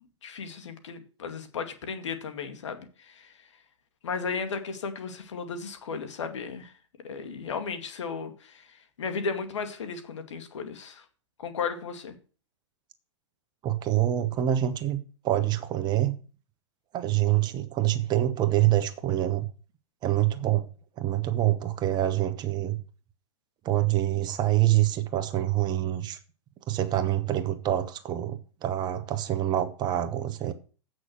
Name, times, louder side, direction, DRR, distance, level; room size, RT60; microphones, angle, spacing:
voice 1, 0.0-3.5 4.0-6.7 7.0-11.1 11.4-12.1, left 5 dB, 75° left, 2.1 m, -35 dB
voice 2, 13.6-15.0 15.2-16.2 16.9-19.4 20.0-20.7 21.0-22.8 23.6-26.2 26.7-30.5, right 13 dB, 30° right, 1.2 m, -26 dB
8.1 x 6.4 x 7.7 m
hypercardioid pair, 125°, 15 cm